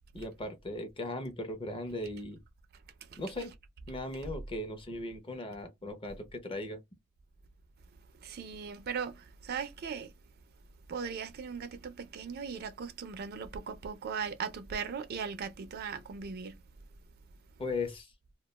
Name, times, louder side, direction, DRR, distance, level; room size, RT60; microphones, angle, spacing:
voice 1, 0.1-2.4 3.2-3.5 3.9-6.8 17.6-18.1, left 2 dB, 25° left, 0.5 m, -38 dB
voice 2, 8.2-9.2 9.4-10.1 10.9-16.5, right 6 dB, 45° right, 0.4 m, -38 dB
2.3 x 2.2 x 2.9 m
head